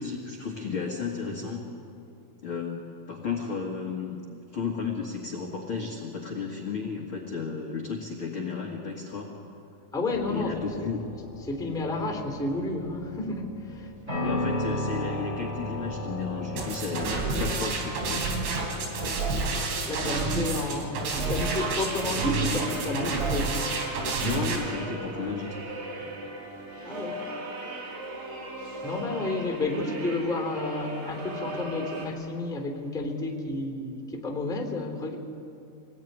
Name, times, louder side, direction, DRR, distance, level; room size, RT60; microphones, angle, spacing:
voice 1, 0.0-1.7 2.4-2.8 3.1-9.3 10.3-11.0 14.2-18.3 23.3-23.5 24.2-25.6, left 5 dB, 50° left, -1 dB, 1.5 m, -33 dB
voice 2, 9.9-10.7 11.5-13.9 19.9-23.6 26.0-26.1 26.8-27.2 28.8-35.2, left 2 dB, ahead, 2 dB, 2.3 m, -31 dB
sound 1, 10.1-23.2, left 1 dB, 15° right, 4.9 m, -37 dB
sound 2, 16.6-24.6, right 3 dB, 90° right, 5.6 m, -29 dB
sound 3, 21.2-32.1, right 2 dB, 70° right, 5.6 m, -38 dB
26.5 x 19.5 x 9.7 m, 2.6 s
omnidirectional pair, 5.5 m